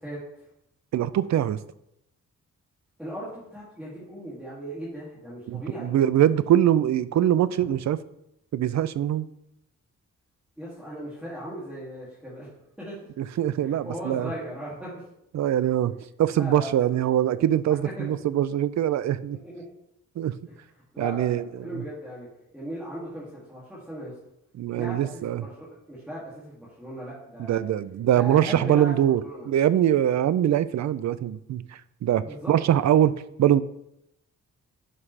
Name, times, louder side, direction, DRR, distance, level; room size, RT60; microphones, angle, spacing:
voice 1, 0.9-1.6 5.5-8.0 8.5-9.3 13.2-14.3 15.3-19.4 20.2-20.4 21.0-21.8 24.6-25.5 27.5-29.2 29.5-33.6, right 11 dB, 70° right, 16 dB, 0.5 m, -23 dB
voice 2, 3.0-5.9 7.6-7.7 10.6-12.5 12.8-13.0 13.6-15.0 16.4-17.0 18.0-18.1 19.4-19.6 20.5-20.6 20.9-24.1 24.7-27.6 28.1-29.5 32.2-32.6, equal, 5° right, -9 dB, 2.5 m, -38 dB
11.0 x 5.6 x 3.3 m, 0.80 s
cardioid pair, 105°, 29 cm